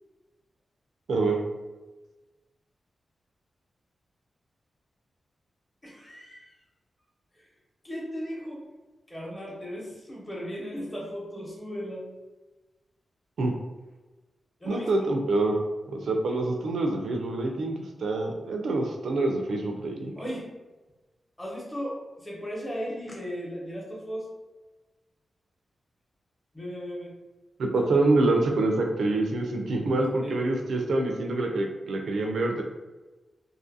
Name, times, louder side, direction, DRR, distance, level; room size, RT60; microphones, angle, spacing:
voice 1, 1.1-1.4 13.4-13.5 14.6-15.6 15.9-20.1 27.6-32.6, right 2 dB, 85° right, 2 dB, 0.4 m, -26 dB
voice 2, 5.8-6.5 7.8-8.6 9.1-12.1 14.6-14.9 20.2-20.5 21.4-24.3 26.5-27.1 30.2-30.4, equal, 20° left, -4 dB, 0.8 m, -36 dB
2.6 x 2.4 x 2.6 m, 1.2 s
wide cardioid pair, 100°, 0 cm